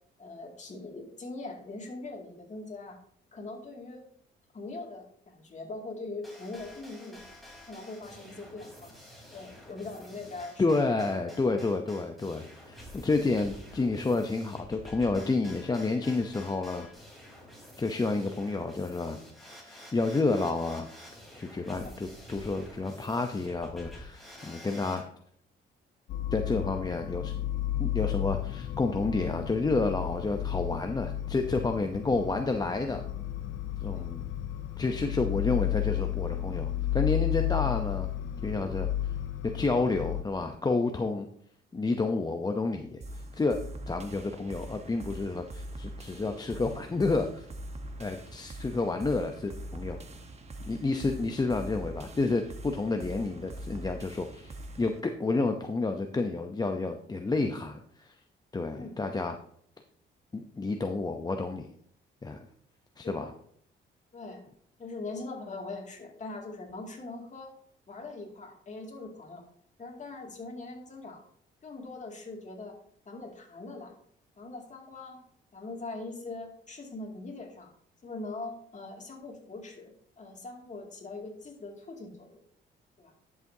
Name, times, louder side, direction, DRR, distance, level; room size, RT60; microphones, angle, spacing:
voice 1, 0.2-3.0 3.3-4.0 4.5-7.2 7.7-8.9 9.3-10.9 21.8-21.9 33.9-34.1 58.7-59.0 63.0-63.3 64.1-64.5 64.8-67.5 67.9-69.4 69.8-71.2 71.6-72.8 73.1-73.9 74.4-75.2 75.5-77.7 78.0-79.9 80.2-82.4 83.0-83.1, left 3 dB, 35° left, 1 dB, 2.3 m, -41 dB
sound 1, 6.2-25.0, left 1 dB, ahead, 3.8 m, -49 dB
voice 2, 10.6-16.9 17.8-19.2 19.6-20.9 21.3-25.0 26.3-27.3 27.8-33.0 33.8-34.2 34.8-38.1 38.4-38.9 39.5-41.3 41.7-47.5 48.0-50.0 50.6-58.2 58.5-59.4 60.3-61.7 62.2-62.5 63.0-63.3, left 3 dB, 20° left, 5 dB, 0.7 m, -30 dB
sound 2, 26.1-40.2, left 12 dB, 75° left, 0.7 m, -32 dB
sound 3, 43.0-55.0, right 1 dB, 35° right, 1.1 m, -43 dB
11.0 x 7.2 x 2.7 m, 0.64 s
cardioid pair, 90°, 20 cm